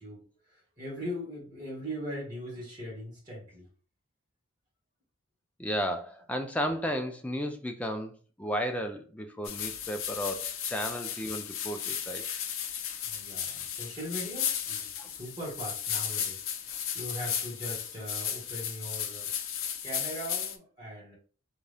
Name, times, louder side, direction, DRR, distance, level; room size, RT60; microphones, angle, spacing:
voice 1, 0.0-3.7 13.0-21.1, equal, 20° right, 1.7 m, -40 dB
voice 2, 5.6-12.3 15.0-15.1, equal, 5° left, 0.4 m, -34 dB
sound 1, 9.4-20.6, left 9 dB, 75° left, 0.5 m, -35 dB
3.6 x 2.7 x 3.4 m
head